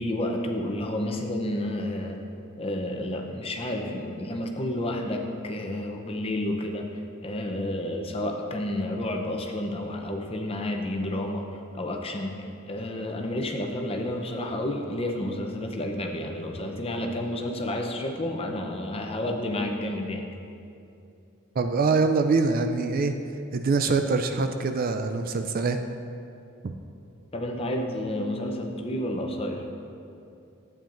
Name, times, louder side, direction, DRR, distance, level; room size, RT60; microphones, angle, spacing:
voice 1, 0.0-2.2 2.6-11.5 11.7-20.3 27.3-29.7, left 1 dB, 25° left, 2 dB, 0.7 m, -30 dB
voice 2, 21.6-23.1 23.5-25.8 26.6-26.7, right 4 dB, 40° right, 7 dB, 0.3 m, -24 dB
11.5 x 8.7 x 2.6 m, 2.6 s
head